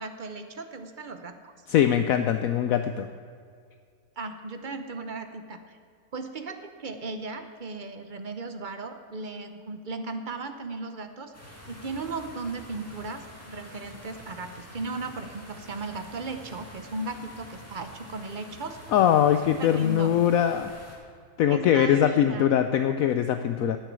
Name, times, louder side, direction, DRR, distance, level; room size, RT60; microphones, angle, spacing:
voice 1, 0.0-1.5 4.2-5.6 6.1-18.8 19.6-20.1 21.5-22.5 23.6-23.8, right 3 dB, 40° right, 8 dB, 0.9 m, -36 dB
voice 2, 1.7-3.1 18.9-20.7 21.4-23.8, left 10 dB, 70° left, 9 dB, 1.0 m, -22 dB
sound 1, 11.3-21.0, equal, 10° left, 2.4 m, -47 dB
10.0 x 9.4 x 8.1 m, 2.2 s
omnidirectional pair, 1.6 m